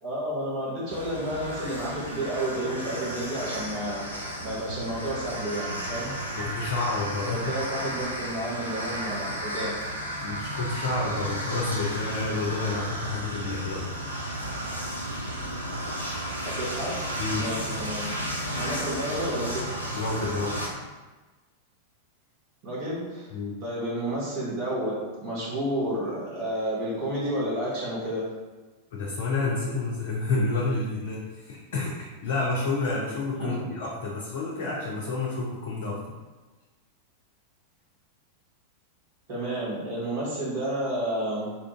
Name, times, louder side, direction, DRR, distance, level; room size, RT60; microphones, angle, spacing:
voice 1, 0.0-6.1 7.2-9.8 16.4-17.0 17.3-18.1 18.6-19.6 22.6-23.3 23.6-28.3 33.4-33.7 39.3-41.5, right 1 dB, 45° right, -7 dB, 1.2 m, -31 dB
sound 1, 0.9-20.7, equal, 85° right, 0.5 m, -33 dB
voice 2, 6.3-7.6 10.2-13.9 17.2-17.5 19.9-20.6 23.3-23.6 28.9-36.0, left 3 dB, 55° left, -3 dB, 0.5 m, -29 dB
2.7 x 2.4 x 3.6 m, 1.2 s
figure-of-eight pair, 90°, 0 cm